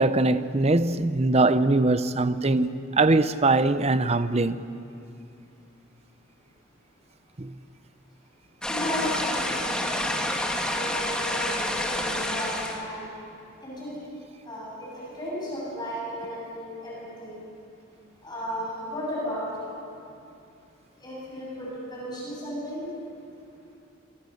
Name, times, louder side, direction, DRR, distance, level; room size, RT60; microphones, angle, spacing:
voice 1, 0.0-4.6 7.4-7.5, right 2 dB, 30° right, 0.7 m, -22 dB
sound 1, 8.6-12.8, left 1 dB, 5° left, 2.0 m, -28 dB
voice 2, 8.7-10.3 10.6-13.1 13.6-14.0 14.4-17.5 18.2-19.8 20.2-20.3 21.0-22.9, equal, 20° left, 8.0 m, -34 dB
27.5 x 24.5 x 6.6 m
head